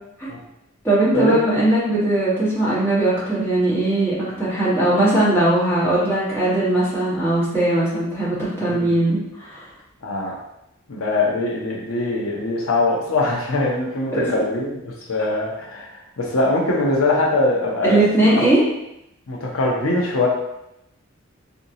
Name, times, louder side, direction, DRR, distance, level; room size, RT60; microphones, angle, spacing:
voice 1, 0.8-9.7 14.1-14.3 17.8-18.6, right 1 dB, 10° left, -10 dB, 1.4 m, -19 dB
voice 2, 10.0-10.3 10.9-14.7 15.1-18.0 18.4-18.5 19.3-20.3, left 2 dB, 85° left, -2 dB, 0.7 m, -22 dB
3.8 x 2.6 x 2.7 m, 0.83 s
head